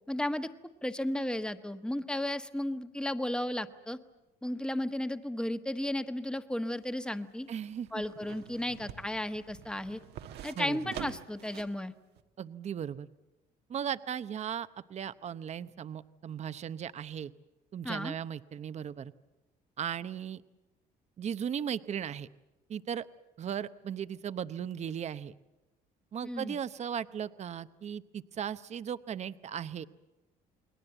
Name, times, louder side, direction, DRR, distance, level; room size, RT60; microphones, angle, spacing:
voice 1, 0.1-0.5 0.8-4.0 4.4-7.5 7.9-10.0 10.4-11.9 17.8-18.1 26.2-26.6, left 1 dB, 5° left, 9 dB, 1.3 m, -34 dB
sound 1, 6.7-11.8 12.2-12.3, right 10 dB, 75° right, 1.4 m, -47 dB
voice 2, 7.5-8.0 10.6-10.9 12.4-13.1 13.7-17.3 17.7-19.1 19.8-20.4 21.2-22.3 22.7-23.1 23.4-25.3 26.1-29.8, right 8 dB, 40° right, 13 dB, 0.8 m, -37 dB
29.0 x 21.0 x 8.0 m, 1.0 s
cardioid pair, 110°, 17 cm